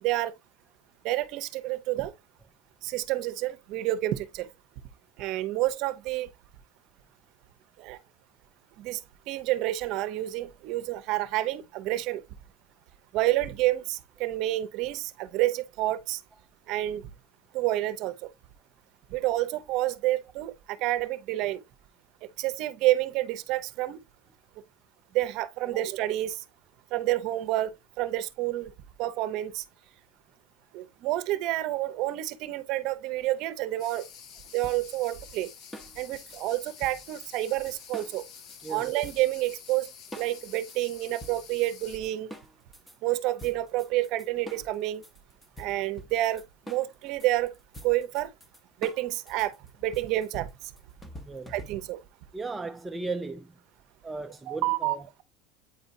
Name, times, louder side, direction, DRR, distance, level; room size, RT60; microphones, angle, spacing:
voice 1, 0.0-0.3 1.0-2.1 2.8-4.5 5.2-6.3 7.8-8.0 8.8-9.0 9.3-12.2 13.1-16.2 16.7-17.1 17.5-18.1 19.1-21.6 22.4-24.0 25.1-26.4 26.9-27.7 28.0-28.7 29.0-29.6 30.7-34.0 34.5-35.5 36.0-38.2 38.7-39.9 40.2-42.3 43.0-45.0 45.6-47.5 47.8-48.3 48.8-49.6 49.8-50.5 51.5-52.0 54.5-55.2, right 15 dB, 55° right, 0.7 m, -29 dB
sound 1, 33.8-42.0, left 8 dB, 50° left, 1.0 m, -49 dB
sound 2, 34.6-38.6 39.0-39.8 40.1-43.0 43.4-52.1, equal, 10° left, 0.9 m, -47 dB
voice 2, 52.3-53.5 54.0-55.1, right 3 dB, 10° right, 0.4 m, -36 dB
8.8 x 4.3 x 2.6 m
supercardioid pair, 140°, 0 cm